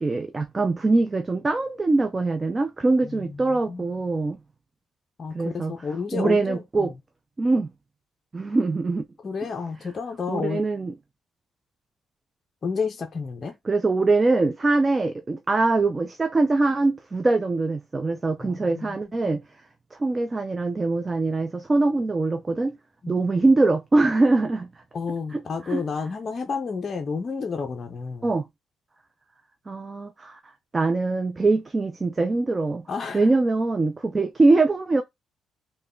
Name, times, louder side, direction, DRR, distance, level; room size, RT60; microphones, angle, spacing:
voice 1, 0.0-4.4 5.3-5.7 6.1-6.9 7.4-7.7 8.3-9.0 10.3-10.9 13.7-19.4 20.0-22.8 23.1-24.7 25.3-25.4 25.7-25.8 28.2-28.5 29.7-30.4 30.7-32.9 33.1-35.0, right 3 dB, 25° right, 0.4 m, -23 dB
voice 2, 3.0-3.9 5.2-6.9 9.2-10.6 12.6-13.5 18.4-19.0 19.2-19.4 23.0-23.3 24.9-28.3 32.9-33.3, left 5 dB, 40° left, 0.5 m, -31 dB
3.3 x 2.2 x 3.6 m
cardioid pair, 90°, 0 cm